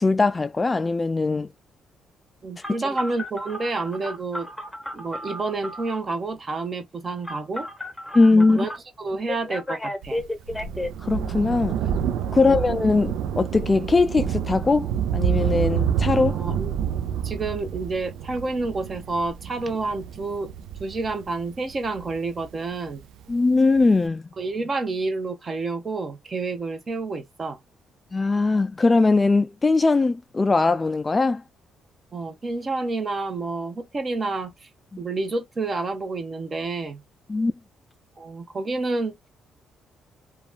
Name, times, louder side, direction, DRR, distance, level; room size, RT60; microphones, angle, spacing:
voice 1, 0.0-1.5 8.1-8.6 11.0-11.8 12.3-16.4 23.3-24.2 28.1-31.4 37.3-37.5, left 3 dB, 25° left, 0.3 m, -20 dB
voice 2, 2.4-4.5 4.9-7.7 8.3-8.7 9.0-10.2 12.3-12.6 16.3-16.7 17.2-20.5 20.8-23.0 24.4-27.6 32.1-34.7 35.0-37.0 38.2-39.1, right 3 dB, 35° right, 0.9 m, -29 dB
Telephone, 2.6-6.0 7.2-8.8 9.3-10.9, left 1 dB, 10° left, 0.9 m, -33 dB
Thunder, 10.0-22.9 23.8-23.9, right 8 dB, 85° right, 0.4 m, -28 dB
3.0 x 2.3 x 2.3 m
cardioid pair, 90°, 0 cm